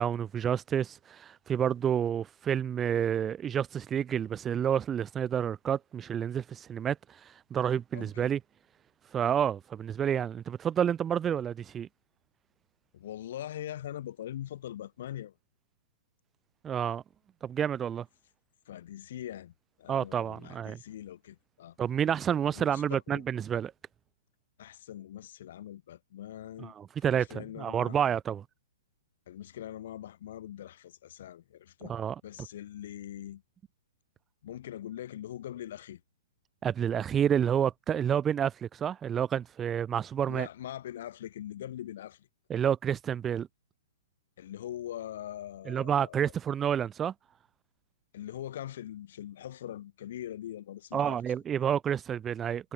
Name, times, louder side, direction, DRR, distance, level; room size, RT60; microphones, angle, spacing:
voice 1, 0.0-8.4 9.1-11.9 16.6-17.0 17.4-18.1 19.9-20.8 21.8-23.7 26.6-28.4 31.9-32.2 36.6-40.5 42.5-43.5 45.7-47.1 50.9-52.7, right 9 dB, 15° right, 0.5 m, -29 dB
voice 2, 7.9-8.3 12.9-15.3 18.7-19.5 19.8-21.8 22.5-23.2 24.6-26.7 27.1-28.0 29.3-31.9 32.2-33.4 34.4-36.0 40.3-42.3 44.4-46.3 48.1-51.2 51.6-51.7, left 11 dB, 55° left, 2.7 m, -42 dB
hypercardioid pair, 145°, 0 cm